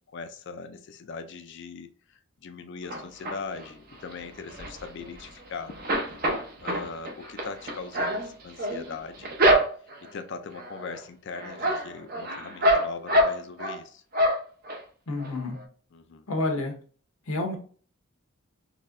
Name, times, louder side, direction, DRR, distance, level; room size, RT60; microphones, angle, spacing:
voice 1, 0.1-5.7 6.2-6.4 6.6-9.3 10.0-14.0 15.9-16.3, left 4 dB, 55° left, 8 dB, 0.4 m, -40 dB
sound 1, 2.9-3.7 4.1-5.4 5.7-10.1 10.6-11.0 11.3-13.8 14.1-14.8 15.2-15.3 15.6-15.7, equal, 45° right, 0.7 m, -26 dB
voice 2, 15.1-15.6 16.3-16.7 17.3-17.6, left 2 dB, 85° left, 4 dB, 1.0 m, -29 dB
4.1 x 3.0 x 2.5 m, 0.42 s
head